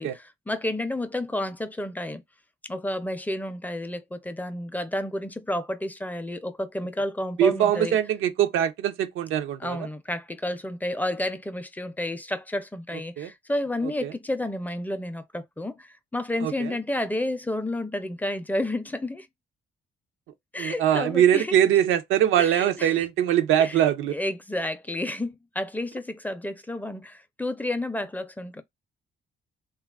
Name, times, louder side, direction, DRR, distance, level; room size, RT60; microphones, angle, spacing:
voice 1, 0.0-2.2 2.7-8.0 9.6-19.3 20.5-21.6 22.4-23.0 23.6-23.8 24.1-28.6, left 1 dB, 10° left, 0.4 m, -31 dB
voice 2, 7.4-9.8 13.2-13.3 14.0-14.1 16.4-16.7 20.6-24.1, right 10 dB, 85° right, 0.5 m, -22 dB
3.1 x 2.3 x 2.3 m
cardioid pair, 90°, 20 cm